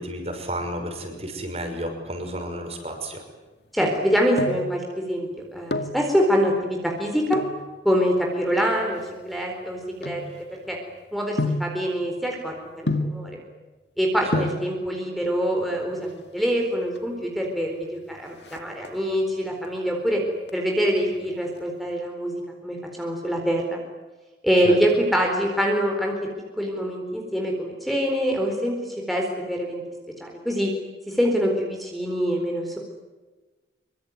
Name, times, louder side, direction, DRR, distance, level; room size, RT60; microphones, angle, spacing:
voice 1, 0.0-3.2 14.3-14.4 24.6-24.7, right 1 dB, 35° right, 4 dB, 6.0 m, -31 dB
voice 2, 3.7-7.4 7.8-10.2 10.5-10.8 11.1-13.4 14.0-20.2 20.5-23.8 24.4-26.1 26.6-29.8 30.2-30.7 31.1-32.8, equal, ahead, 1 dB, 4.3 m, -25 dB
sound 1, 4.0-4.8 5.5-6.0 7.3-7.6 8.4-10.8 11.4-11.8 12.9-13.3 14.0-14.1 14.3-14.7 15.8-16.3 16.6-16.7 16.9-17.1 17.5-17.9 18.2-19.2 19.6-20.1 20.4-21.6 21.9-22.0, left 2 dB, 70° left, 2.2 m, -29 dB
25.5 x 24.0 x 9.6 m, 1.2 s
head